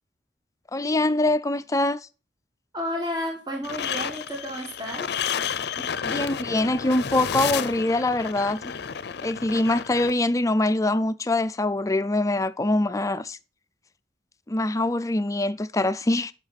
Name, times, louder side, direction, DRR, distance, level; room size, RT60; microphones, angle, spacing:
voice 1, 0.7-2.0 6.0-8.6 9.2-13.4 14.5-16.3, left 2 dB, 20° left, 0.4 m, -24 dB
voice 2, 2.7-5.1 5.8-5.9, equal, 25° right, 1.6 m, -31 dB
sound 1, 3.6-10.1, left 7 dB, 65° left, 0.5 m, -31 dB
9.9 x 6.0 x 4.1 m
head